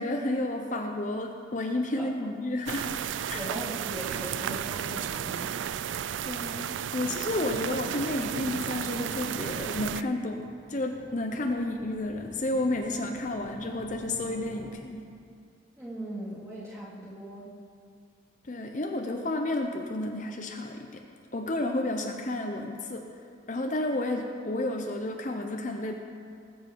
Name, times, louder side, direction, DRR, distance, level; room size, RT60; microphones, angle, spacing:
voice 1, 0.0-2.9 3.3-3.4 6.3-15.1 18.4-21.0 21.3-23.0 23.5-25.9, left 1 dB, 40° left, 3 dB, 0.7 m, -31 dB
sound 1, 2.7-10.0, right 8 dB, 80° right, 0.4 m, -33 dB
voice 2, 3.3-5.5 15.8-17.5, right 1 dB, 15° right, -8 dB, 3.0 m, -39 dB
sound 2, 8.5-14.7, equal, 45° right, 2.6 m, -51 dB
20.0 x 7.5 x 4.6 m, 2.3 s
head